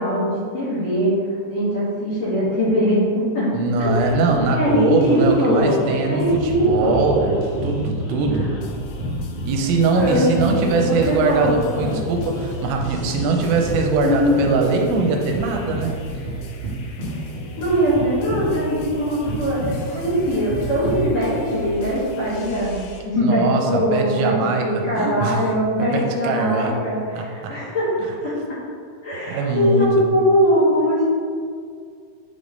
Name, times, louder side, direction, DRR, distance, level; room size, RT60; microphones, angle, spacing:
voice 1, 0.0-3.5 3.8-4.1 4.5-7.2 9.9-12.0 14.0-14.4 17.6-22.7 23.0-28.3 29.0-31.1, equal, 50° left, -10 dB, 2.4 m, -21 dB
voice 2, 3.5-8.5 9.5-15.9 23.2-25.4 25.8-26.7 27.2-27.5 29.3-29.9, right 3 dB, 85° right, 2 dB, 3.0 m, -21 dB
sound 1, 3.8-23.0, left 1 dB, 80° left, 2.0 m, -38 dB
sound 2, 6.3-21.6, right 1 dB, 65° right, 1.3 m, -30 dB
9.8 x 3.6 x 3.9 m, 2.2 s
omnidirectional pair, 5.1 m